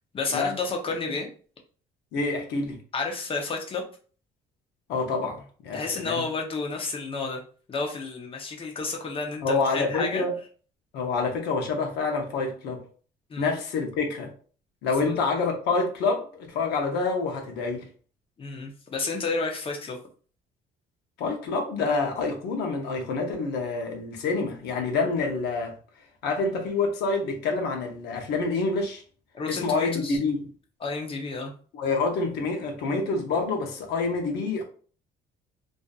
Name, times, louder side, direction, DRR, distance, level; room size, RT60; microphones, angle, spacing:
voice 1, 0.1-1.3 2.9-3.8 5.7-7.4 7.7-10.2 13.3-13.5 15.0-15.2 18.4-20.0 29.3-30.2 30.8-31.5, left 3 dB, 30° left, 0.7 m, -31 dB
voice 2, 2.1-2.8 4.9-6.2 9.4-10.3 10.9-12.8 13.4-14.3 14.8-17.8 21.2-25.7 26.2-29.0 29.5-30.5 31.7-34.6, left 3 dB, 75° left, 0.8 m, -27 dB
2.5 x 2.5 x 2.3 m
cardioid pair, 110°, 17 cm